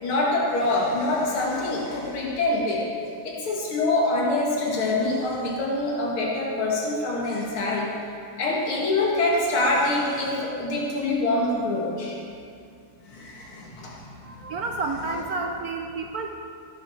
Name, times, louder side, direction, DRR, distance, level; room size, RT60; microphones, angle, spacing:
voice 1, 0.0-2.8 3.2-7.9 8.4-12.2 13.1-13.9, left 2 dB, 85° left, -4 dB, 2.6 m, -25 dB
voice 2, 14.2-16.3, right 3 dB, 65° right, 3 dB, 0.9 m, -30 dB
14.0 x 10.0 x 4.5 m, 2.4 s
omnidirectional pair, 2.3 m